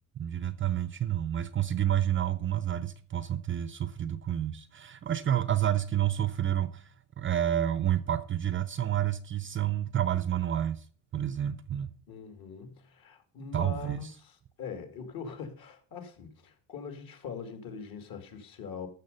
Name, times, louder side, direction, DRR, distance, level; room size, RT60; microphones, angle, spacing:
voice 1, 0.2-6.9 7.2-10.8 11.1-11.9 13.5-14.1, right 11 dB, 30° right, 0.6 m, -29 dB
voice 2, 12.1-14.3 14.6-18.9, left 6 dB, 50° left, 2.6 m, -42 dB
13.5 x 6.7 x 5.4 m
cardioid pair, 125°, 44 cm